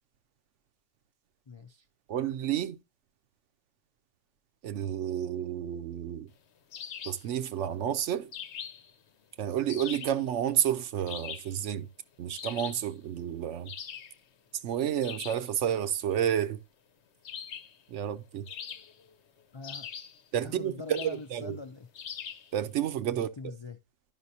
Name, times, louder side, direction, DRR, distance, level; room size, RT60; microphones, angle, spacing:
voice 1, 1.5-1.9 19.5-19.9 20.4-21.9 23.1-23.8, left 3 dB, 45° left, 0.3 m, -43 dB
voice 2, 2.1-2.8 4.6-6.3 7.1-8.3 9.4-11.9 12.2-13.7 14.6-16.6 17.9-18.5 20.3-21.6 22.5-23.3, right 10 dB, 70° right, 0.9 m, -30 dB
sound 1, 6.7-7.3 8.3-8.9 9.7-10.2 11.1-11.6 12.3-12.9 13.6-14.2 15.0-15.5 17.2-17.8 18.5-19.1 19.6-20.2 20.9-21.2 21.9-22.5, left 8 dB, 60° left, 1.0 m, -41 dB
11.0 x 5.6 x 2.7 m
omnidirectional pair, 1.4 m